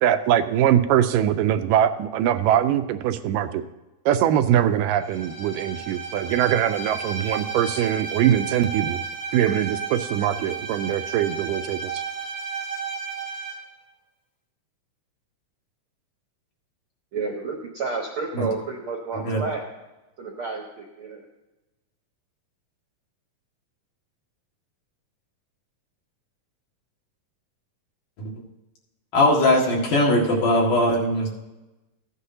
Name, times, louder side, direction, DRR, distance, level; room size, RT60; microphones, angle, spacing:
voice 1, 0.0-3.6 4.1-9.0 9.3-12.0, right 10 dB, 85° right, 9 dB, 2.1 m, -22 dB
Bowed string instrument, 5.0-13.6, right 5 dB, 35° left, 0.7 m, -33 dB
voice 2, 17.1-19.7 20.2-21.3, right 4 dB, 60° right, 0 dB, 1.4 m, -31 dB
voice 3, 29.1-31.3, left 1 dB, 70° left, -2 dB, 3.4 m, -20 dB
15.0 x 9.8 x 2.8 m, 1.1 s
omnidirectional pair, 3.9 m